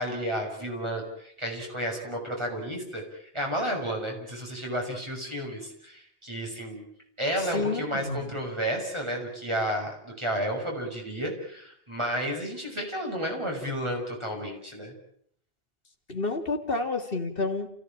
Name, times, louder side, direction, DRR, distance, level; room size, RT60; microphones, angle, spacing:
voice 1, 0.0-6.8 7.2-14.9, equal, 25° right, 0 dB, 6.8 m, -32 dB
voice 2, 7.4-8.3 16.1-17.7, left 3 dB, 50° left, 4 dB, 2.9 m, -30 dB
29.5 x 16.5 x 8.8 m, 0.67 s
omnidirectional pair, 1.2 m